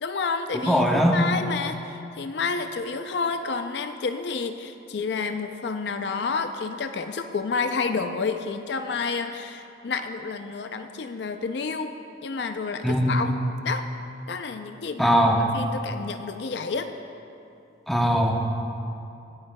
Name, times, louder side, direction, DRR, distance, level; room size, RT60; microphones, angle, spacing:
voice 1, 0.0-13.4 13.6-13.9 14.3-15.2 15.5-16.9, left 4 dB, 65° left, 7 dB, 0.4 m, -30 dB
voice 2, 0.7-1.1 12.8-13.2 15.0-15.5 17.9-18.6, equal, ahead, -1 dB, 0.9 m, -20 dB
22.5 x 8.7 x 2.2 m, 2.7 s
head